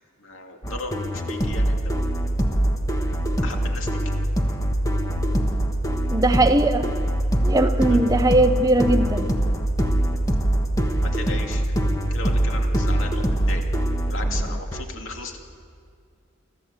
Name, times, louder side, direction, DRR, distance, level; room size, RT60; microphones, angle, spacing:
voice 1, 0.2-2.2 3.0-4.0 7.9-8.0 11.0-11.8 12.1-13.6 14.1-15.4, left 2 dB, 75° left, 2 dB, 2.5 m, -36 dB
sound 1, 0.6-14.8, equal, 15° left, 1.2 m, -25 dB
sound 2, 1.5-14.4, right 1 dB, 40° left, 1.0 m, -26 dB
voice 2, 6.1-6.9 7.4-9.3, right 1 dB, 15° right, 9 dB, 0.7 m, -19 dB
29.5 x 13.0 x 8.1 m, 2.2 s
head